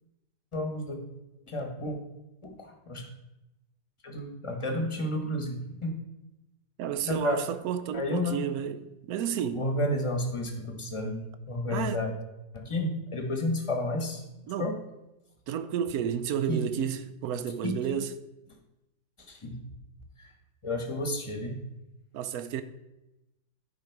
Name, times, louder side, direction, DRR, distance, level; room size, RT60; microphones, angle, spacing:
voice 1, 0.5-1.0 1.5-2.0 2.6-3.1 4.0-5.9 7.0-7.4 7.9-8.5 9.5-11.2 11.5-12.1 12.5-14.2 14.6-14.8 16.5-16.9 17.6-17.7 19.2-19.6 20.2-20.3 20.6-21.5, left 1 dB, 20° left, 1.0 m, -31 dB
voice 2, 6.8-9.6 11.7-12.0 14.5-14.7 15.5-18.1 22.1-22.6, right 9 dB, 75° right, 0.9 m, -31 dB
10.5 x 5.2 x 4.6 m
omnidirectional pair, 2.0 m